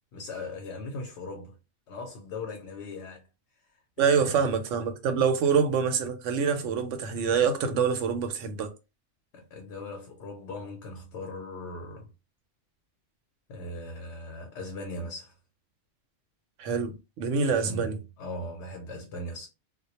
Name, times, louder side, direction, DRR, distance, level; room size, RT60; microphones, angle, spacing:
voice 1, 0.1-1.6 1.9-3.2 4.0-4.5 9.3-12.1 13.5-15.3 17.6-19.5, left 2 dB, 75° left, 0.9 m, -39 dB
voice 2, 4.0-8.7 16.6-18.0, right 6 dB, 85° right, 0.9 m, -26 dB
2.2 x 2.0 x 2.8 m
omnidirectional pair, 1.2 m